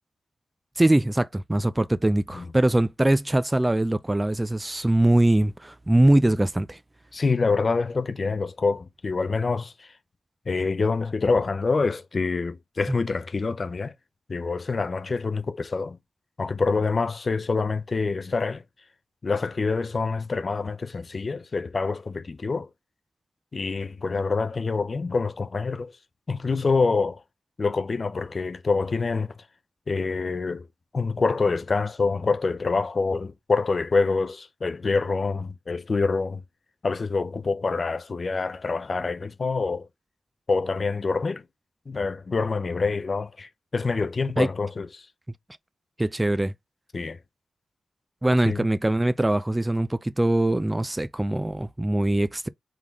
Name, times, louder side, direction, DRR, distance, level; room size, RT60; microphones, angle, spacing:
voice 1, 0.8-6.8 44.4-44.5 46.0-46.5 48.2-52.5, right 1 dB, 15° right, 0.4 m, -22 dB
voice 2, 7.1-9.9 10.5-13.9 14.3-16.0 16.4-18.6 19.2-22.7 23.5-25.9 26.3-27.2 27.6-29.3 29.9-30.7 30.9-36.4 36.8-39.9 40.5-41.4 41.9-45.1 46.9-47.2 48.4-48.6, left 4 dB, 45° left, 0.6 m, -26 dB
3.8 x 3.6 x 3.0 m
cardioid pair, 65°, 0 cm